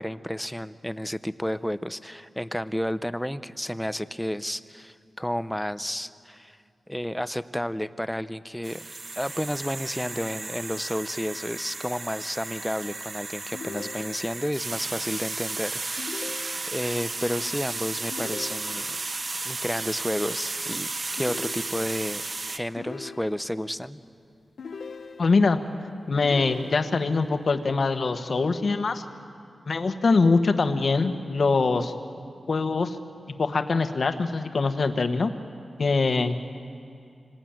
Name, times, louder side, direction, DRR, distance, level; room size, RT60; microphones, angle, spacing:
voice 1, 0.0-6.6 6.9-8.9 9.2-18.9 19.4-22.2 22.5-24.0, equal, 5° left, 13 dB, 0.6 m, -31 dB
sound 1, 8.6-22.6, right 3 dB, 40° right, 0.9 m, -34 dB
sound 2, 13.5-14.6 16.0-17.0 18.1-19.2 21.2-22.2 22.8-23.7 24.6-25.6 26.2-27.3, left 5 dB, 90° left, 1.2 m, -41 dB
voice 2, 25.2-25.6 26.1-29.0 29.7-31.9 32.5-33.0 33.4-35.3 35.8-36.4, left 4 dB, 60° left, 8 dB, 1.3 m, -23 dB
27.0 x 18.5 x 9.0 m, 2.5 s
wide cardioid pair, 110°, 0 cm